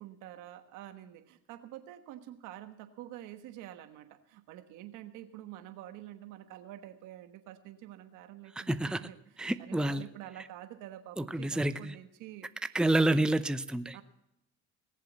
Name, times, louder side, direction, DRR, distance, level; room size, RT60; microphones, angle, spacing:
voice 1, 0.0-12.5 13.9-14.0, right 13 dB, 85° right, 1.3 m, -48 dB
voice 2, 8.7-9.0 9.4-10.0 11.2-11.9 12.7-14.0, right 1 dB, 5° right, 0.7 m, -28 dB
19.5 x 7.5 x 7.5 m
supercardioid pair, 70°, 30 cm